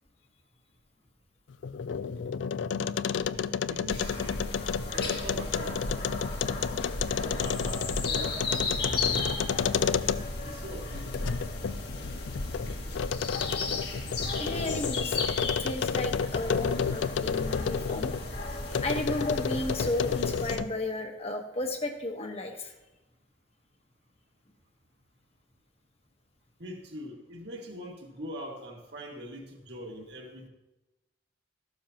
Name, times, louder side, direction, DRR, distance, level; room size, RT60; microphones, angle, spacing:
sound 1, 1.5-10.5 10.9-18.2 18.7-20.8, left 6 dB, 80° left, 0.4 m, -31 dB
voice 1, 3.7-4.4 4.9-6.1 7.0-10.0 10.4-11.4 26.6-30.5, equal, 60° right, -1 dB, 2.1 m, -43 dB
sound 2, 3.9-20.6, left 3 dB, 60° left, 2.1 m, -35 dB
voice 2, 14.4-18.1 18.8-22.7, left 1 dB, 35° left, 4 dB, 1.4 m, -33 dB
14.5 x 12.0 x 3.0 m, 1.0 s
head